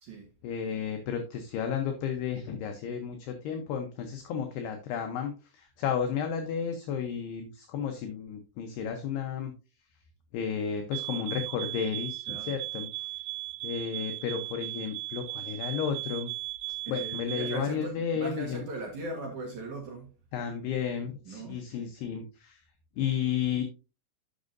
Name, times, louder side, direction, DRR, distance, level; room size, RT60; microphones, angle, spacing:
voice 1, 0.4-9.5 10.3-13.1 13.6-16.3 16.9-18.6 20.3-22.6 23.0-23.6, left 7 dB, 75° left, 2.4 m, -33 dB
sound 1, 10.9-17.7, right 19 dB, 90° right, 3.2 m, -37 dB
voice 2, 12.3-12.6 16.9-20.1 21.3-21.6, right 2 dB, 65° right, 1.9 m, -39 dB
11.5 x 7.4 x 2.6 m
omnidirectional pair, 5.7 m